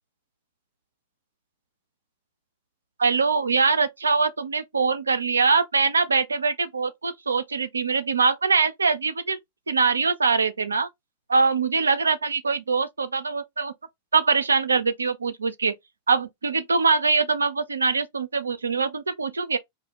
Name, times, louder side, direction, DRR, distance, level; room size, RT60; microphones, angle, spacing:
voice 1, 3.0-9.4 9.7-10.9 11.3-13.7 14.1-15.7 16.1-19.6, right 4 dB, 75° right, 0.3 m, -23 dB
2.4 x 2.0 x 2.8 m
figure-of-eight pair, 90°, 0 cm